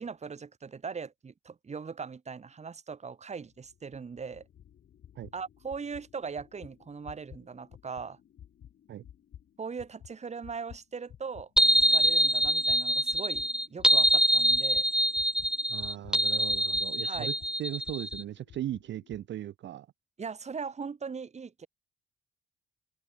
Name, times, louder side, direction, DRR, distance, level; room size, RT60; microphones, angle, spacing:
voice 1, 0.0-4.5 5.3-8.2 9.6-11.5 11.9-14.8 17.0-17.3 20.2-21.7, right 5 dB, 35° right, 2.1 m, -40 dB
sound 1, 3.5-11.5 11.8-19.3, left 10 dB, 65° left, 4.4 m, -53 dB
sound 2, 11.6-18.2, right 1 dB, 5° right, 0.5 m, -25 dB
voice 2, 15.7-19.9, right 12 dB, 65° right, 1.0 m, -38 dB
open air
cardioid pair, 90°, 20 cm